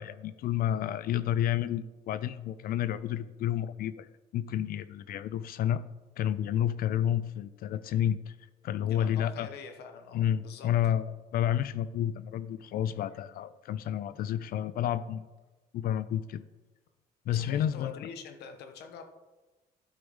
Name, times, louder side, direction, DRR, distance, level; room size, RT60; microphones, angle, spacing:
voice 1, 0.0-5.8 6.2-8.4 8.6-9.5 10.1-15.3 15.7-16.4 17.3-18.0, left 10 dB, 60° left, 16 dB, 0.4 m, -30 dB
voice 2, 8.8-10.7 14.1-14.3 17.3-19.0, left 5 dB, 75° left, 6 dB, 1.2 m, -46 dB
11.5 x 4.7 x 5.4 m, 1.2 s
cardioid pair, 110°, 17 cm